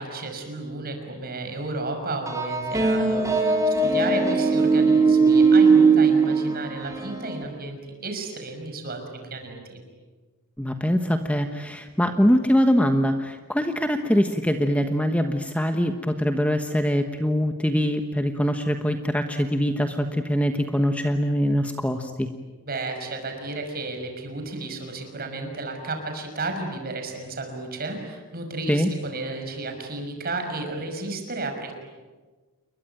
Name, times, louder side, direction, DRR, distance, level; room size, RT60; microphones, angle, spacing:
voice 1, 0.0-9.0 9.3-9.8 22.7-31.7, right 2 dB, 45° right, 4 dB, 5.9 m, -33 dB
sound 1, 2.3-7.4, right 4 dB, 15° right, 3.1 m, -19 dB
voice 2, 10.6-22.3 28.7-28.9, equal, 5° left, 6 dB, 1.2 m, -23 dB
29.5 x 22.0 x 9.2 m, 1.3 s
head